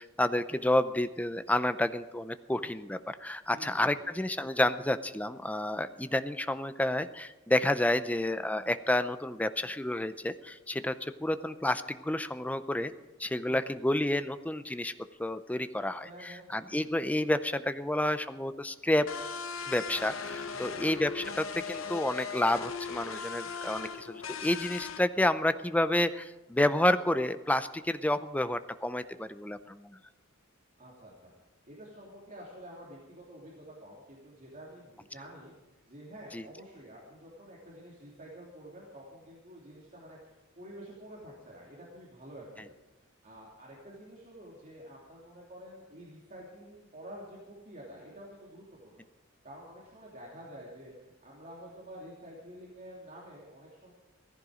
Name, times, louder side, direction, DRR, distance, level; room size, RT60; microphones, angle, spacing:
voice 1, 0.0-12.9 13.2-14.9 15.2-19.1 19.7-30.0 36.3-36.4, left 1 dB, 5° left, 12 dB, 0.5 m, -30 dB
voice 2, 3.5-4.1 13.4-13.8 16.0-16.5 20.5-21.0 30.8-31.3 31.7-35.5 35.9-42.7 43.2-49.1 49.4-53.9, equal, 40° right, -4 dB, 2.9 m, -49 dB
sound 1, 19.1-25.0, left 6 dB, 70° left, 0.9 m, -38 dB
16.5 x 15.0 x 5.0 m, 1.1 s
head